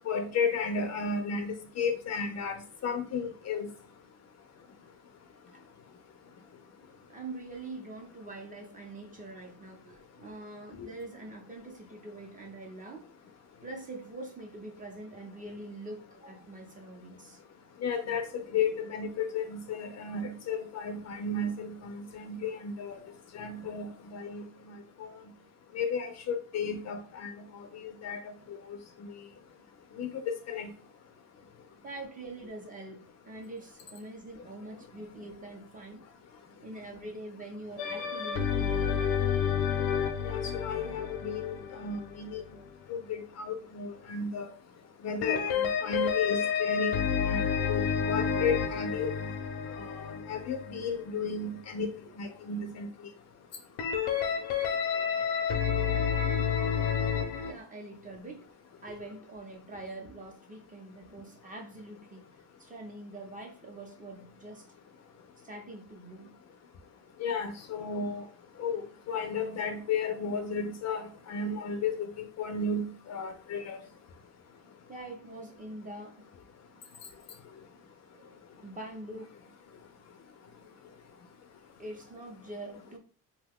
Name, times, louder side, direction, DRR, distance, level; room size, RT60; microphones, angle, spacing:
voice 1, 0.1-2.6 2.8-3.7 10.8-10.9 17.8-18.2 18.5-23.0 23.3-24.4 25.0-25.1 25.7-28.2 28.5-28.6 30.0-30.7 40.2-42.4 42.9-44.5 45.0-49.3 49.7-51.9 52.2-52.9 67.2-68.2 68.6-68.8 69.1-73.8, left 5 dB, 45° left, 6 dB, 0.5 m, -33 dB
voice 2, 7.1-13.1 13.6-17.4 31.8-33.0 33.2-36.0 36.6-39.1 55.2-55.3 57.4-58.4 58.8-62.2 62.6-64.7 65.4-66.3 74.9-76.3 78.1-79.3 81.8-83.0, right 2 dB, 20° right, 1 dB, 0.6 m, -44 dB
sound 1, 37.8-42.7 45.2-51.2 53.8-57.5, left 7 dB, 85° left, 0.7 m, -30 dB
2.8 x 2.2 x 3.5 m, 0.41 s
cardioid pair, 130°, 37 cm